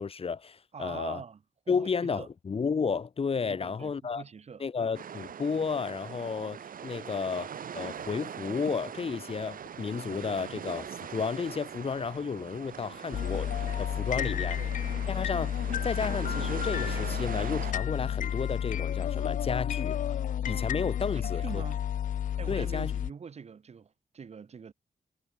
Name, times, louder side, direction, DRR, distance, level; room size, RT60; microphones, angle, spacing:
voice 1, 0.0-1.2 1.7-4.2 4.6-7.5 7.7-14.6 15.1-15.5 15.8-20.0 20.4-21.6 22.5-22.9, left 5 dB, 40° left, 1.3 m, -32 dB
voice 2, 0.7-1.4 1.7-2.3 3.5-4.7 14.2-14.7 21.1-21.8 22.4-24.7, right 6 dB, 45° right, 1.5 m, -44 dB
sound 1, 4.9-17.7, right 8 dB, 70° right, 1.4 m, -41 dB
sound 2, 13.1-23.1, left 10 dB, 60° left, 0.4 m, -31 dB
wide cardioid pair, 160°, 15 cm